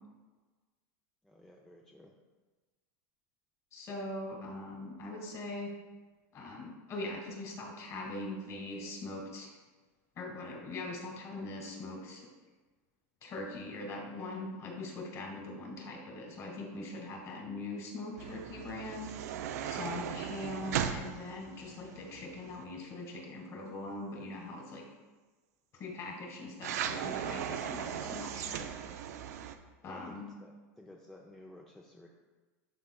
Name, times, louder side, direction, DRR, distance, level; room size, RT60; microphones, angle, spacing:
voice 1, 1.2-2.1 29.8-32.1, left 1 dB, 5° left, -1 dB, 0.5 m, -54 dB
voice 2, 3.7-5.7 6.3-9.5 10.2-12.3 13.2-24.8 25.7-29.0 29.8-30.3, left 2 dB, 40° left, 1 dB, 2.0 m, -42 dB
sound 1, 18.2-22.6 26.6-29.6, right 9 dB, 85° right, 0.5 m, -38 dB
12.0 x 4.2 x 2.3 m, 1.3 s
supercardioid pair, 130°, 8 cm